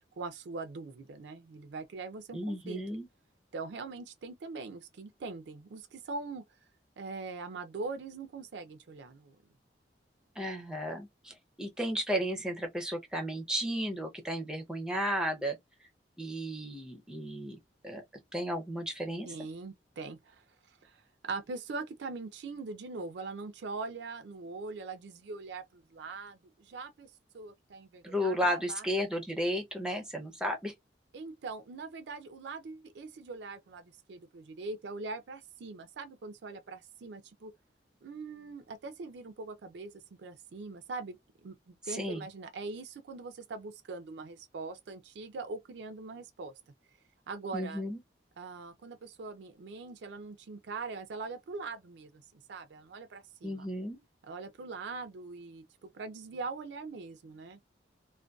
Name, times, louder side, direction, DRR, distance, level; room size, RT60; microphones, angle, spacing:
voice 1, 0.0-2.8 3.5-6.4 7.0-9.4 19.3-28.9 31.1-37.5 38.0-46.5 47.3-47.8 48.4-52.2 52.5-53.7 54.2-57.6, right 3 dB, 70° right, 0.4 m, -42 dB
voice 2, 2.3-3.1 10.4-15.6 16.2-17.6 17.8-18.0 18.3-19.3 28.0-30.7 41.9-42.2 47.5-48.0 53.4-54.0, equal, 5° right, 0.5 m, -33 dB
2.5 x 2.2 x 2.2 m
head